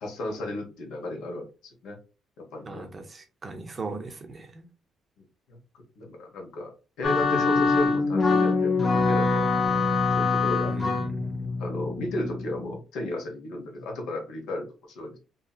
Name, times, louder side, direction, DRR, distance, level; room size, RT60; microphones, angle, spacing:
voice 1, 0.0-2.0 2.4-2.8 5.5-5.6 6.0-6.7 7.0-9.5 10.1-10.7 11.6-15.2, left 1 dB, 90° left, 1.0 m, -34 dB
voice 2, 2.7-4.7 10.7-11.5, right 3 dB, 25° right, 0.5 m, -38 dB
sound 1, 7.0-12.8, left 4 dB, 35° left, 0.4 m, -24 dB
2.7 x 2.7 x 2.3 m
cardioid pair, 145°, 0 cm